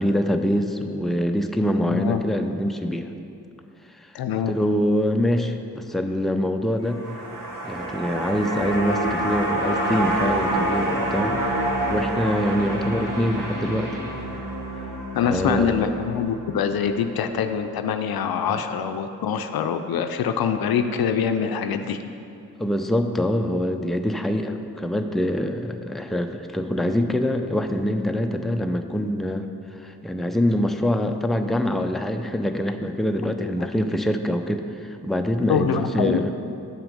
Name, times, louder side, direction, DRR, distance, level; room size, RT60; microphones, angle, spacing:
voice 1, 0.0-3.1 4.5-7.0 7.6-11.4 11.9-14.0 15.3-15.8 18.5-18.6 22.6-29.5 29.8-36.3, equal, ahead, 5 dB, 0.6 m, -24 dB
voice 2, 1.9-2.2 4.1-4.5 15.1-22.0 33.4-33.5 35.5-36.2, left 7 dB, 75° left, 8 dB, 0.6 m, -24 dB
sound 1, 6.8-17.2 17.5-17.6, right 1 dB, 60° right, 1.4 m, -27 dB
7.4 x 5.7 x 5.4 m, 2.6 s
supercardioid pair, 40°, 37 cm